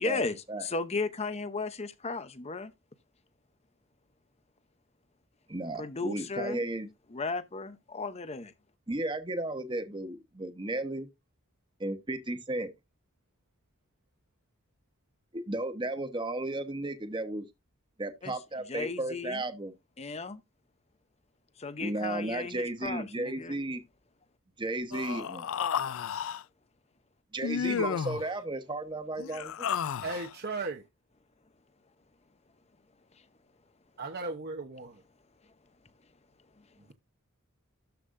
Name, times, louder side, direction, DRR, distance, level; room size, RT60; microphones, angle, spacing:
voice 1, 0.0-2.7 5.8-6.6 7.1-8.5 18.2-18.3 18.7-19.4 20.0-20.4 21.6-23.6, left 3 dB, 30° left, 0.8 m, -35 dB
voice 2, 5.5-6.9 8.9-11.1 11.8-12.7 15.3-17.5 18.0-19.7 21.8-23.8 24.6-25.5 27.3-29.7, right 2 dB, 20° right, 1.1 m, -34 dB
Human voice, 24.9-26.4 27.4-28.3 29.2-30.3, left 7 dB, 65° left, 0.4 m, -32 dB
voice 3, 30.0-30.8 34.0-35.0, right 3 dB, 50° right, 1.0 m, -36 dB
13.0 x 5.4 x 2.6 m
head